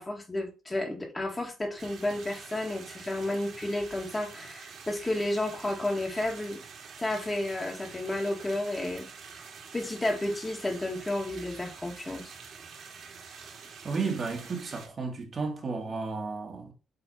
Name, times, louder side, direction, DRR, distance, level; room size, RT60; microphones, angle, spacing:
voice 1, 0.0-6.6 7.0-9.1 9.7-12.3, left 1 dB, 15° left, 2.0 m, -32 dB
sound 1, 1.8-14.9, right 5 dB, 55° right, 2.5 m, -47 dB
voice 2, 13.8-16.7, right 4 dB, 35° right, 1.9 m, -33 dB
8.0 x 3.9 x 4.2 m
cardioid pair, 125°, 0 cm